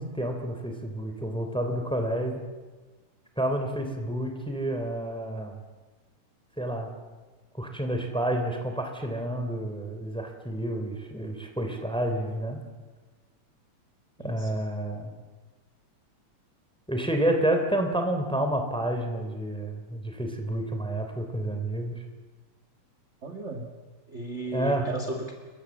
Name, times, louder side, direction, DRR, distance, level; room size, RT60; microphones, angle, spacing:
voice 1, 0.0-2.4 3.4-5.6 6.6-6.9 7.5-12.6 14.2-15.1 16.9-22.0 24.5-24.8, right 1 dB, ahead, 4 dB, 3.0 m, -29 dB
voice 2, 14.2-14.6 23.2-23.7 24.1-25.3, right 2 dB, 25° right, 4 dB, 2.1 m, -35 dB
28.5 x 23.5 x 7.4 m, 1.3 s
omnidirectional pair, 3.4 m